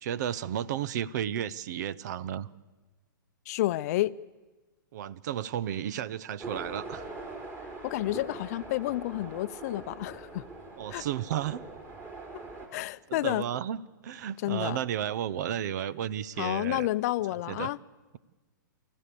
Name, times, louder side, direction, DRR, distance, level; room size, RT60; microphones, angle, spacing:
voice 1, 0.0-2.5 4.9-7.0 10.8-11.6 13.1-13.8 14.0-16.9 17.5-17.7, right 10 dB, 55° right, 0.7 m, -33 dB
voice 2, 3.5-4.2 7.8-10.4 10.9-11.1 12.7-13.5 14.4-14.8 16.4-17.8, left 16 dB, 50° left, 0.6 m, -30 dB
sound 1, 6.4-12.7, right 2 dB, 20° right, 3.7 m, -43 dB
24.5 x 14.5 x 8.4 m
hypercardioid pair, 120°, 11 cm